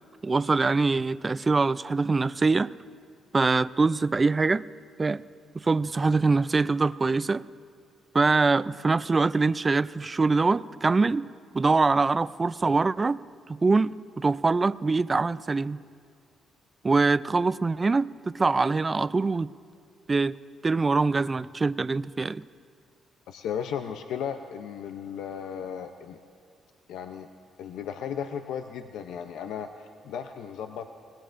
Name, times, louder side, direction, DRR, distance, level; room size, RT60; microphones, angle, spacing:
voice 1, 0.2-2.7 3.3-4.6 5.0-5.2 5.5-7.5 8.1-11.3 11.5-13.2 13.5-15.8 16.8-19.5 20.1-20.4 20.6-22.4, right 3 dB, 25° right, 0.3 m, -24 dB
voice 2, 23.3-26.2 26.9-27.3 27.6-30.9, left 8 dB, 85° left, 0.6 m, -35 dB
26.5 x 19.5 x 2.5 m
cardioid pair, 90°, 0 cm